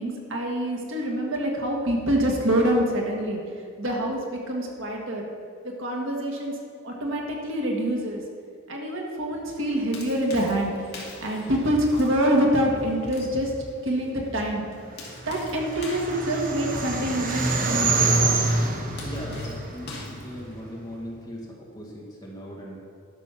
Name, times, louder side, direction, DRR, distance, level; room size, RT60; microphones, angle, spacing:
voice 1, 0.0-3.4 3.8-5.2 5.6-6.5 6.8-8.2 8.7-10.9 11.2-13.5 13.8-14.6 15.2-18.1, right 1 dB, 65° right, 0 dB, 1.7 m, -26 dB
sound 1, 9.6-21.0, left 3 dB, 50° left, 2.4 m, -46 dB
sound 2, 15.2-20.6, right 3 dB, 40° right, 1.1 m, -26 dB
voice 2, 19.0-22.8, equal, 20° left, -3 dB, 2.1 m, -38 dB
11.5 x 6.3 x 5.9 m, 2.4 s
head